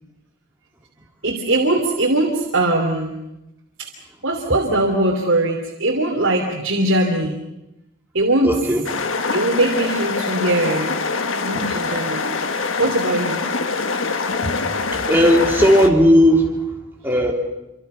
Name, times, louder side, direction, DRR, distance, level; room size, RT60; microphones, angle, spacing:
voice 1, 1.2-3.1 3.8-3.9 4.2-7.3 8.1-8.6 9.3-10.9 11.4-12.2 12.5-13.4, right 1 dB, 70° right, 0 dB, 3.0 m, -20 dB
voice 2, 8.4-8.8 15.0-16.5 17.0-17.3, equal, 10° right, 0 dB, 3.0 m, -15 dB
sound 1, 8.8-15.9, left 4 dB, 75° left, 1.5 m, -24 dB
27.5 x 26.0 x 5.7 m, 0.92 s
head